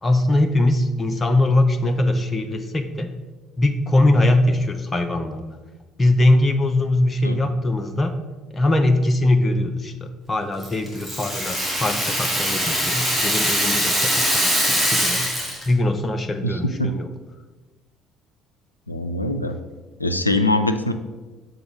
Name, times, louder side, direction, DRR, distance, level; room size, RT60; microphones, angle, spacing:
voice 1, 0.0-3.1 3.6-5.5 6.0-8.1 8.5-9.9 10.3-15.3 15.7-17.1, left 1 dB, 25° left, 7 dB, 0.5 m, -21 dB
Rattle (instrument), 10.6-15.7, equal, 5° right, 2.0 m, -22 dB
voice 2, 16.4-16.9 18.9-19.5 20.0-20.9, left 1 dB, 85° left, 8 dB, 0.3 m, -22 dB
6.9 x 3.9 x 5.1 m, 1.2 s
figure-of-eight pair, 55°, 0 cm